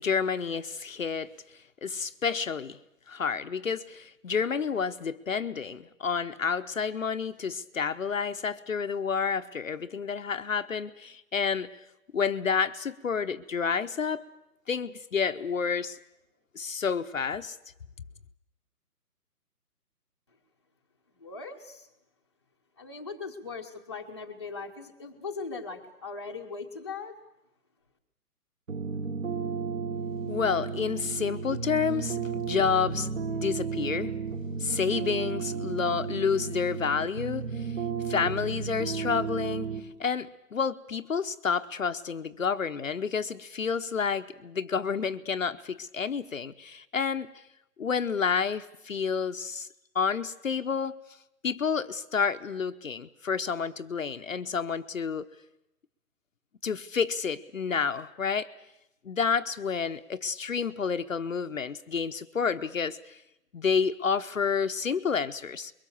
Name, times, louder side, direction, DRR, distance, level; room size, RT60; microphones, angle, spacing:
voice 1, 0.0-1.3 1.8-2.8 3.1-11.7 12.1-14.2 14.7-16.0 16.5-17.6 30.3-34.1 34.6-37.7 38.0-39.7 40.0-47.3 47.8-49.7 49.9-51.0 51.4-55.3 56.6-58.5 59.1-63.2 63.5-65.7, left 6 dB, 55° left, 8 dB, 0.9 m, -29 dB
voice 2, 21.2-21.9 22.8-27.2, left 4 dB, 15° left, 0 dB, 0.9 m, -39 dB
sound 1, 28.7-39.8, right 5 dB, 55° right, 3.5 m, -33 dB
24.0 x 22.5 x 7.0 m, 0.89 s
hypercardioid pair, 180°, 47 cm